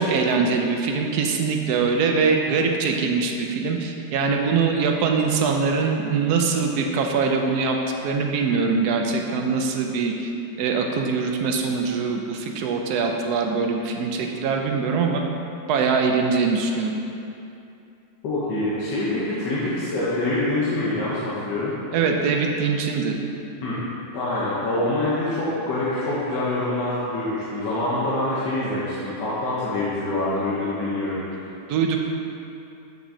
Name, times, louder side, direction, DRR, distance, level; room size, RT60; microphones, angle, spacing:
voice 1, 0.0-7.8 8.0-10.3 10.6-15.2 15.7-16.9 21.9-23.1 31.7-32.0, right 5 dB, 70° right, 2 dB, 1.1 m, -23 dB
voice 2, 18.2-21.7 23.6-23.7 24.1-31.5, left 2 dB, 80° left, -8 dB, 1.6 m, -25 dB
7.4 x 5.8 x 2.7 m, 2.7 s
omnidirectional pair, 1.9 m